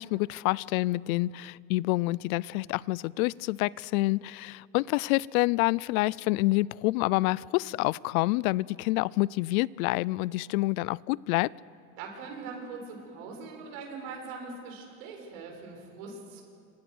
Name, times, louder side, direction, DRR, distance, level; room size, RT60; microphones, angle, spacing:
voice 1, 0.0-11.5, left 20 dB, 75° left, 24 dB, 0.6 m, -27 dB
voice 2, 12.0-16.4, right 4 dB, 75° right, 1 dB, 7.4 m, -41 dB
27.5 x 26.5 x 6.3 m, 2.4 s
supercardioid pair, 120°, 43 cm